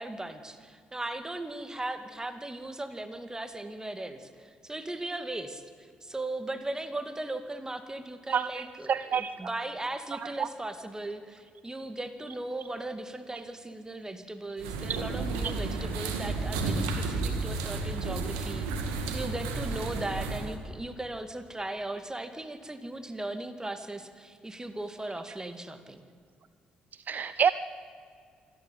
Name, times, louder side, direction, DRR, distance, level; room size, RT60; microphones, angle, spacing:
voice 1, 0.0-26.0, right 2 dB, 15° right, 9 dB, 2.3 m, -38 dB
voice 2, 8.3-9.3 10.2-10.3 27.1-27.5, right 7 dB, 45° right, 15 dB, 0.6 m, -27 dB
sound 1, 14.6-20.6, right 3 dB, 75° right, 2.1 m, -32 dB
26.0 x 12.0 x 9.5 m, 2.1 s
figure-of-eight pair, 45°, 4 cm